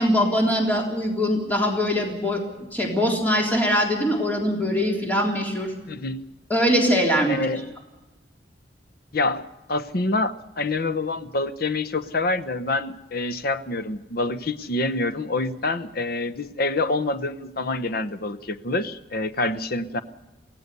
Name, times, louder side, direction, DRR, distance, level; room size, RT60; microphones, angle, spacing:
voice 1, 0.0-2.4 2.7-5.7 6.5-7.4, equal, 10° left, 0 dB, 3.5 m, -22 dB
voice 2, 5.9-6.2 7.3-7.6 9.1-20.0, left 2 dB, 55° left, 12 dB, 1.0 m, -26 dB
23.5 x 16.5 x 6.9 m, 1.1 s
head